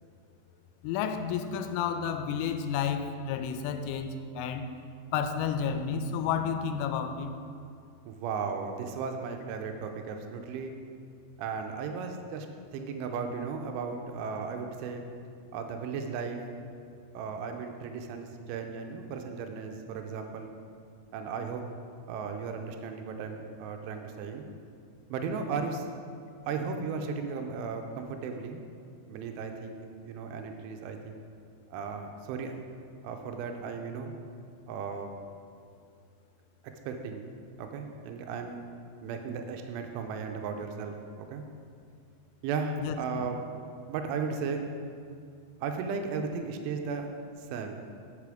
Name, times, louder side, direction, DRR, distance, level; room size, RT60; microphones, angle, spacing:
voice 1, 0.8-4.7 5.1-7.3 42.8-43.0, left 7 dB, 85° left, 8 dB, 3.0 m, -31 dB
voice 2, 8.1-10.7 11.4-12.5 12.7-15.0 15.5-16.4 17.1-20.5 21.1-21.6 22.1-24.5 25.1-25.9 26.5-28.6 29.1-31.2 31.7-32.6 33.0-34.1 34.7-35.1 36.9-37.2 37.6-38.6 39.0-41.5 42.4-43.4 43.9-44.6 45.6-47.1 47.4-47.8, right 5 dB, 85° right, 5 dB, 3.0 m, -35 dB
8.3 x 6.8 x 4.9 m, 2.4 s
omnidirectional pair, 5.7 m